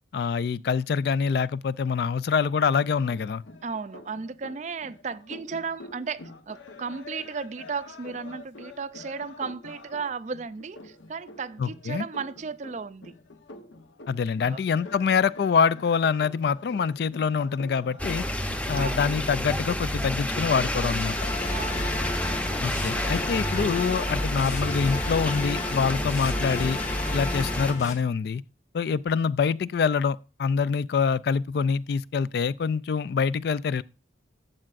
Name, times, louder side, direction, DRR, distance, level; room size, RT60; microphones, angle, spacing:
voice 1, 0.1-3.4 11.6-12.1 14.1-18.2 18.7-21.3 22.6-26.8 27.1-28.4 28.7-33.8, left 6 dB, 55° left, 0.3 m, -25 dB
sound 1, 2.8-22.1, left 2 dB, 80° left, 1.0 m, -47 dB
voice 2, 3.6-13.1 14.5-14.6 18.8-19.0 21.5-21.9 28.8-29.0, right 5 dB, 40° right, 0.4 m, -35 dB
sound 2, 18.0-27.7, equal, 5° left, 0.7 m, -30 dB
sound 3, 21.1-27.9, left 2 dB, 40° left, 1.4 m, -33 dB
12.0 x 7.4 x 2.5 m
head